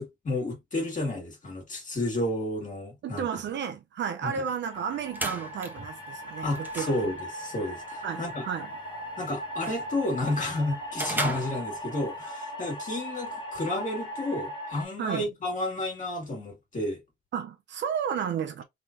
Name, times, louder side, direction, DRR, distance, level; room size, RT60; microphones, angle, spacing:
voice 1, 0.0-3.4 4.2-4.4 6.4-8.4 9.2-17.0, left 1 dB, 40° left, 2.2 m, -31 dB
voice 2, 3.0-6.9 8.0-8.7 15.0-15.3 17.3-18.6, right 7 dB, 65° right, 0.7 m, -32 dB
sound 1, 4.6-14.8, equal, 25° left, 1.5 m, -38 dB
sound 2, 4.7-12.2, right 1 dB, 10° right, 1.4 m, -39 dB
3.8 x 3.1 x 2.7 m
cardioid pair, 90°, 20 cm